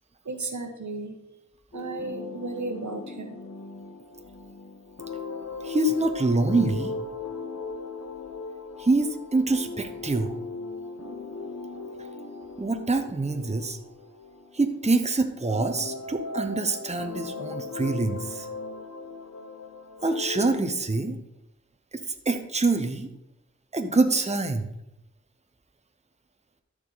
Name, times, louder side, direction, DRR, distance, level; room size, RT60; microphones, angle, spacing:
voice 1, 0.2-1.1 1.7-3.4, right 2 dB, 70° right, 5 dB, 1.2 m, -34 dB
sound 1, 1.7-15.0 15.5-20.6, left 3 dB, 55° left, 1.0 m, -38 dB
voice 2, 5.6-6.9 8.8-10.4 12.6-13.8 14.5-18.5 20.0-21.2 22.2-23.1 23.7-24.7, right 2 dB, 20° right, 6 dB, 0.9 m, -25 dB
13.0 x 4.9 x 4.0 m, 0.85 s
cardioid pair, 40°, 30 cm